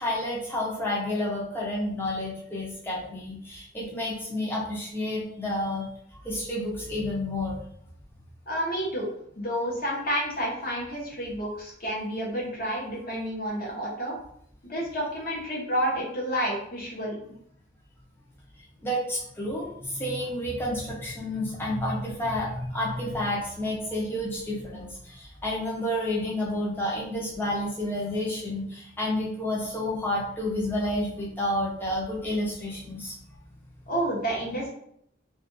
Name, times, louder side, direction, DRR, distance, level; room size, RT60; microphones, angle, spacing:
voice 1, 0.0-5.9 6.2-7.6 18.8-33.2, left 1 dB, 10° left, -5 dB, 0.5 m, -30 dB
voice 2, 8.5-9.1 9.4-14.2 14.6-17.2 33.9-34.7, equal, 45° left, -4 dB, 0.9 m, -30 dB
2.4 x 2.3 x 2.5 m, 0.69 s
head